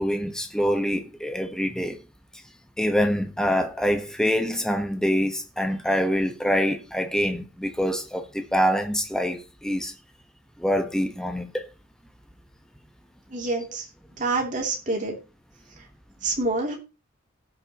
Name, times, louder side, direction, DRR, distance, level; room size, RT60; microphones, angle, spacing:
voice 1, 0.0-2.0 2.8-9.9 10.6-11.7, equal, 5° left, 1.2 m, -25 dB
voice 2, 13.3-13.8 14.2-15.1 16.2-16.8, right 3 dB, 40° right, 3.0 m, -27 dB
18.0 x 6.4 x 3.0 m
head